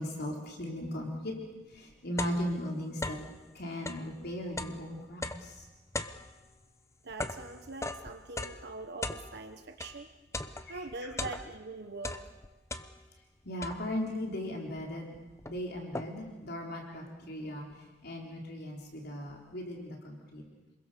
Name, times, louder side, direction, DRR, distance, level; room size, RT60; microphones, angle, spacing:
voice 1, 0.0-1.3 1.7-3.2 3.5-5.5 10.7-10.8 13.5-15.1 15.4-17.7 18.0-20.4, left 1 dB, 60° left, 0 dB, 4.0 m, -37 dB
sound 1, 1.7-3.4 3.7-10.0 10.3-11.7 12.0-13.2 13.6-14.1 14.8-14.9 15.1-16.4, left 2 dB, 15° left, 1.0 m, -40 dB
voice 2, 7.0-10.1 10.7-12.3, right 3 dB, 60° right, 6 dB, 1.3 m, -43 dB
28.0 x 21.5 x 6.9 m, 1.1 s
head